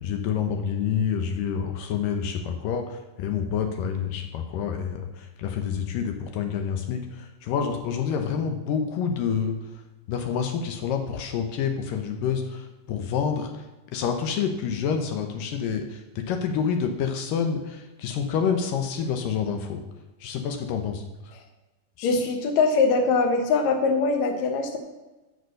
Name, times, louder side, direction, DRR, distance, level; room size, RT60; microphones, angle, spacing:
voice 1, 0.0-2.8 3.2-5.0 5.4-7.0 7.5-9.6 10.1-12.4 12.9-13.5 13.9-15.8 16.2-17.6 18.0-19.8 20.2-21.0, left 7 dB, 80° left, 5 dB, 2.6 m, -27 dB
voice 2, 22.0-24.8, left 4 dB, 65° left, 5 dB, 2.4 m, -22 dB
11.0 x 6.9 x 6.4 m, 1.1 s
omnidirectional pair, 3.9 m